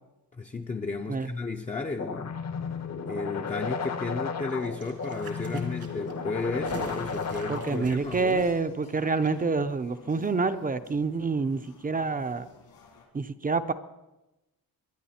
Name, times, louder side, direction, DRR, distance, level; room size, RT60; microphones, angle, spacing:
voice 1, 0.3-2.4 3.1-8.5, left 3 dB, 20° left, 0.5 m, -33 dB
sound 1, 2.0-8.0, left 5 dB, 45° left, 0.9 m, -34 dB
sound 2, 4.5-9.3 9.6-9.7, right 4 dB, 85° right, 3.0 m, -45 dB
sound 3, 5.4-13.1, left 4 dB, 75° left, 3.3 m, -55 dB
voice 2, 7.5-12.5 13.1-13.7, right 4 dB, 25° right, 0.5 m, -27 dB
23.0 x 10.0 x 4.3 m
wide cardioid pair, 160°, 37 cm